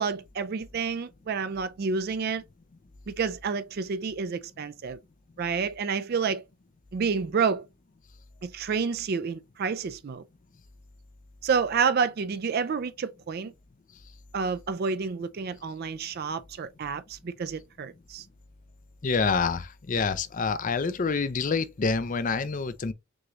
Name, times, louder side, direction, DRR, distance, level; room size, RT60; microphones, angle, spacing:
voice 1, 0.0-2.4 3.1-5.0 5.4-6.4 6.9-7.7 8.4-10.2 11.4-13.5 14.3-18.2, right 5 dB, 45° right, 0.3 m, -29 dB
voice 2, 19.0-22.9, left 4 dB, 35° left, 0.4 m, -27 dB
6.2 x 2.9 x 2.4 m
head